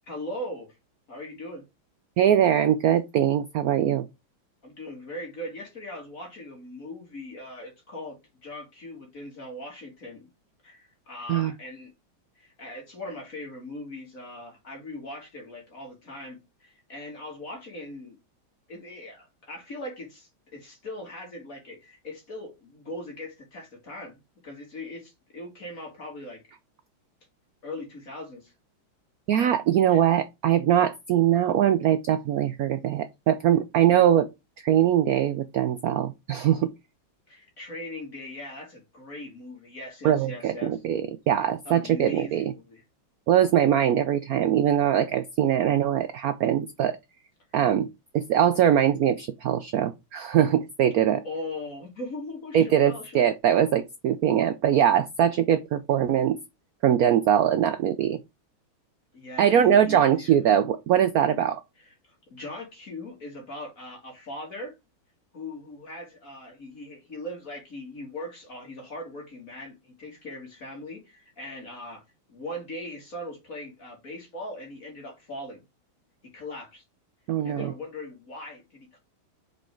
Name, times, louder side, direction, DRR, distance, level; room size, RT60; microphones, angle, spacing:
voice 1, 0.1-0.7 1.1-1.6 4.6-10.3 10.6-11.9 12.4-18.2 18.7-26.4 27.6-28.5 29.9-30.0 33.9-34.0 37.3-40.8 41.7-42.8 51.2-53.3 59.1-60.4 61.8-64.7 65.3-72.0 72.3-75.6 76.2-76.8 77.4-79.0, left 1 dB, 40° left, 2.1 m, -40 dB
voice 2, 2.2-4.0 11.3-11.5 29.3-34.3 34.6-36.7 40.0-42.5 43.3-47.0 47.5-47.9 48.1-51.2 52.5-56.4 56.8-58.2 59.4-61.6 77.3-77.7, right 10 dB, 90° right, 0.7 m, -22 dB
5.2 x 4.7 x 4.4 m
omnidirectional pair, 2.3 m